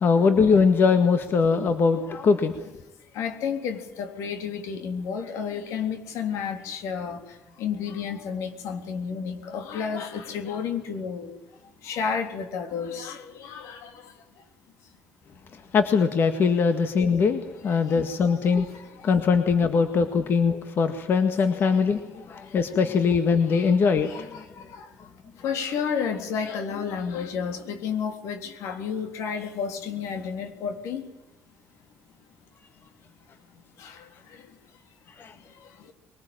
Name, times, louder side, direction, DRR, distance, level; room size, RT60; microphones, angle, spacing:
voice 1, 0.0-2.6 15.7-18.7 19.0-22.0 22.3-24.3 35.2-35.3, left 5 dB, 50° left, 8 dB, 1.8 m, -21 dB
voice 2, 3.2-7.2 7.6-11.3 11.8-13.9 17.9-18.0 18.6-18.7 23.5-23.7 24.1-24.4 24.7-24.9 25.4-31.0 33.8-34.0, left 6 dB, 80° left, 6 dB, 3.6 m, -31 dB
23.0 x 19.5 x 9.1 m, 0.95 s
cardioid pair, 120°, 5 cm